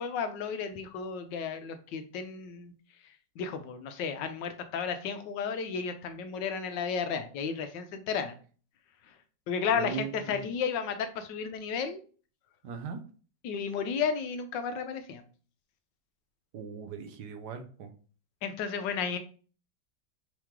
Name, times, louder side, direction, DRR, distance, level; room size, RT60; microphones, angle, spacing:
voice 1, 0.0-2.7 3.4-8.4 9.5-12.0 13.4-15.2 18.4-19.2, left 6 dB, 85° left, 8 dB, 1.4 m, -33 dB
voice 2, 9.7-10.4 12.6-13.0 16.5-17.9, right 6 dB, 70° right, 5 dB, 1.3 m, -39 dB
4.7 x 3.0 x 3.6 m, 0.39 s
omnidirectional pair, 1.9 m